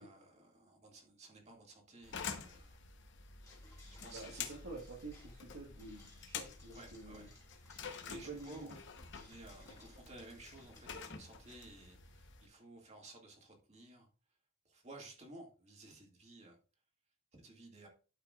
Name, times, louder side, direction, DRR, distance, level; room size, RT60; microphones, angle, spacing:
voice 1, 0.0-2.8 4.0-4.6 6.7-7.3 8.0-8.8 9.1-14.1 14.7-16.6 17.3-17.9, right 2 dB, 30° right, 1 dB, 2.1 m, -55 dB
sound 1, 2.0-12.5, left 6 dB, 55° left, 1.0 m, -49 dB
sound 2, 3.4-10.8, left 3 dB, 15° left, 3.4 m, -63 dB
voice 2, 4.1-7.3 8.1-8.8, right 3 dB, 70° right, -2 dB, 1.5 m, -49 dB
12.5 x 5.7 x 2.4 m, 0.36 s
head